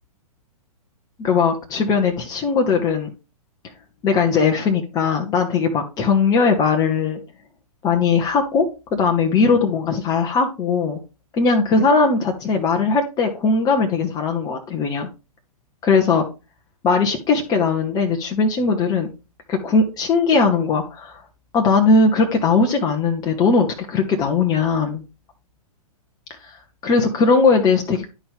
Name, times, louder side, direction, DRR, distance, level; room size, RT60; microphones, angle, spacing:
voice 1, 1.2-3.1 4.0-7.2 7.8-11.0 11.3-15.1 15.8-16.2 16.8-19.1 19.5-21.2 21.5-25.0 26.4-26.6 26.8-28.1, left 4 dB, 20° left, 3 dB, 1.0 m, -19 dB
11.0 x 4.4 x 3.5 m, 0.29 s
figure-of-eight pair, 115°, 19 cm